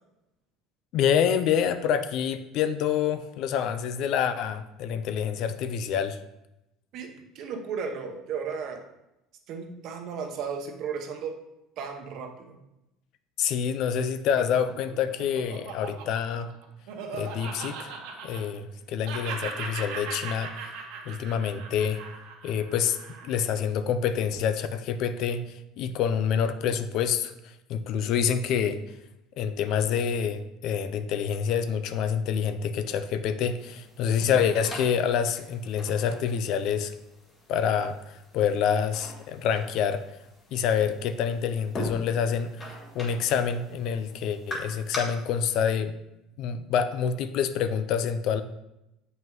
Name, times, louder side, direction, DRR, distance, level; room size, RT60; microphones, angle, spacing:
voice 1, 0.9-6.2 13.4-16.5 17.1-17.9 18.2-20.7 21.1-22.0 22.4-23.0 23.2-28.8 29.4-36.9 37.5-40.0 40.5-42.6 42.9-45.9 46.4-48.4, left 7 dB, 60° left, 11 dB, 0.5 m, -27 dB
voice 2, 6.9-8.8 9.5-11.3 11.8-12.6, right 6 dB, 55° right, 4 dB, 1.0 m, -35 dB
Laughter, 14.7-18.8 19.0-23.5, right 5 dB, 80° right, 1.5 m, -38 dB
sound 1, 33.6-45.0, equal, 25° left, 1.7 m, -43 dB
7.4 x 5.5 x 3.1 m, 0.90 s
cardioid pair, 125°, 0 cm